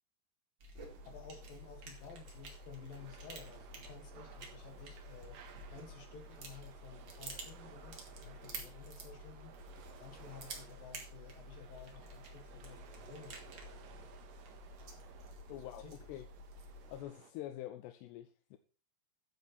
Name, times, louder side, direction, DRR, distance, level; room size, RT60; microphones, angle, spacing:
sound 1, 0.6-17.0, right 1 dB, 40° right, 2.1 m, -51 dB
voice 1, 0.8-14.1 15.5-15.9, left 6 dB, 65° left, 6 dB, 3.0 m, -54 dB
sound 2, 0.8-17.3, right 7 dB, 65° right, 2.6 m, -60 dB
sound 3, 3.0-15.3, right 8 dB, 85° right, 3.6 m, -61 dB
voice 2, 15.5-15.8 16.1-16.3 16.9-18.6, left 13 dB, 90° left, 9 dB, 2.8 m, -46 dB
11.0 x 8.3 x 4.3 m, 0.36 s
omnidirectional pair, 4.7 m